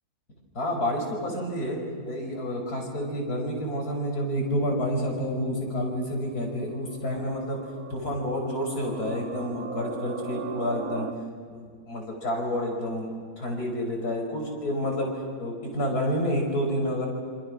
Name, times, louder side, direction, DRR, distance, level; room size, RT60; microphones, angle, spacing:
voice 1, 0.5-7.6 7.9-11.1 11.5-13.1 13.4-17.1, equal, 80° left, 1 dB, 6.0 m, -29 dB
sound 1, 6.0-11.1, right 6 dB, 70° right, 1.5 m, -39 dB
27.5 x 27.0 x 6.4 m, 2.1 s
omnidirectional pair, 1.6 m